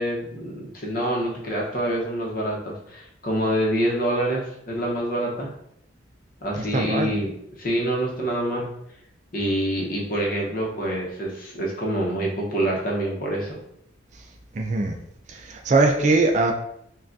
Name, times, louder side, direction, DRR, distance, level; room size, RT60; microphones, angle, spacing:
voice 1, 0.0-5.5 6.4-7.3 7.6-8.7 9.3-13.6, right 1 dB, 45° left, -2 dB, 0.9 m, -26 dB
voice 2, 6.7-7.1 14.5-14.9 15.3-16.5, right 3 dB, 35° right, 4 dB, 0.4 m, -21 dB
5.6 x 2.4 x 2.6 m, 0.74 s
head